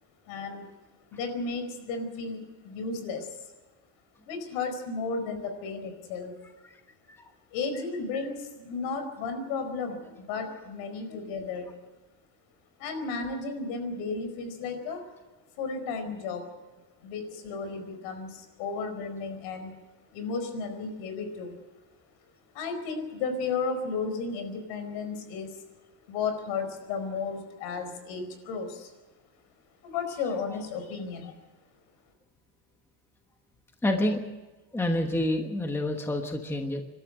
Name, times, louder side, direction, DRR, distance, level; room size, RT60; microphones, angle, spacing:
voice 1, 0.3-0.7 1.1-3.4 4.3-6.4 7.5-11.7 12.8-15.0 15.6-16.5 17.0-19.7 20.1-21.5 22.5-25.6 26.1-28.9 29.8-31.4, left 4 dB, 75° left, 7 dB, 4.8 m, -34 dB
voice 2, 33.8-34.2 34.7-36.8, left 1 dB, 5° left, 4 dB, 1.1 m, -28 dB
27.0 x 12.5 x 7.8 m, 1.2 s
cardioid pair, 170°, 50 cm